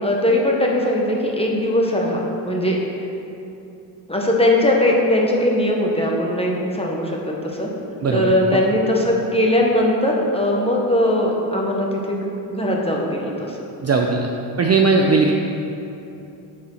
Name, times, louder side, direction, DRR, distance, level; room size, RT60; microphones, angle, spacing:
voice 1, 0.0-2.8 4.1-7.7 8.1-12.2 12.5-13.6, left 1 dB, 10° left, -2 dB, 1.3 m, -20 dB
voice 2, 8.0-8.6 13.8-14.3 14.6-15.3, right 4 dB, 35° right, 1 dB, 0.5 m, -18 dB
6.6 x 4.1 x 5.7 m, 2.8 s
supercardioid pair, 55°, 49 cm